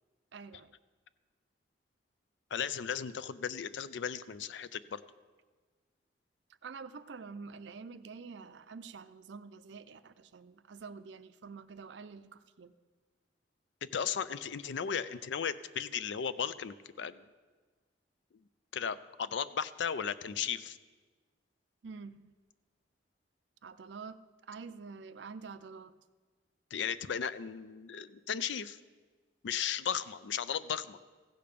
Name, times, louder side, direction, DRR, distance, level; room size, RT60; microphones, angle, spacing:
voice 1, 0.3-0.7 6.6-12.7 21.8-22.3 23.6-24.2 24.5-26.0, right 5 dB, 75° right, 13 dB, 0.5 m, -47 dB
voice 2, 2.5-5.0 13.9-17.2 18.7-20.8 26.7-28.8 29.4-31.0, left 7 dB, 75° left, 15 dB, 0.4 m, -36 dB
15.5 x 6.7 x 5.2 m, 1.4 s
head